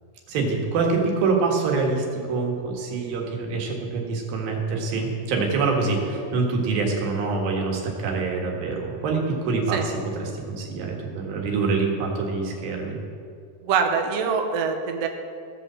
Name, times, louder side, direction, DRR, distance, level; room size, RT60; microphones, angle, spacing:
voice 1, 0.3-13.0, right 4 dB, 85° right, 0 dB, 3.4 m, -25 dB
voice 2, 13.6-15.1, right 6 dB, 65° right, 3 dB, 1.6 m, -24 dB
16.5 x 5.6 x 7.3 m, 2.3 s
omnidirectional pair, 4.0 m